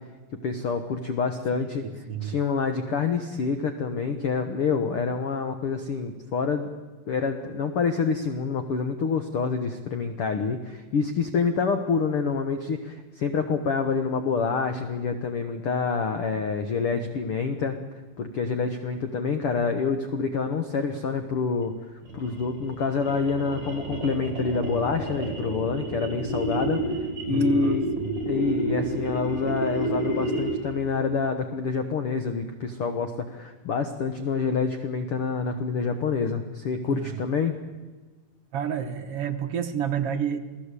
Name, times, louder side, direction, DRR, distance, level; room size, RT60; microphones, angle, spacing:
voice 1, 0.4-1.9 2.2-6.7 7.1-17.8 18.2-26.8 27.3-28.0 28.3-37.6, left 5 dB, 55° left, 8 dB, 1.9 m, -27 dB
voice 2, 1.6-2.4 27.3-28.2 36.9-37.2 38.5-40.4, right 8 dB, 55° right, 7 dB, 2.0 m, -30 dB
sound 1, 22.0-30.7, right 2 dB, 35° right, 6.8 m, -30 dB
28.0 x 18.5 x 8.4 m, 1.3 s
omnidirectional pair, 3.6 m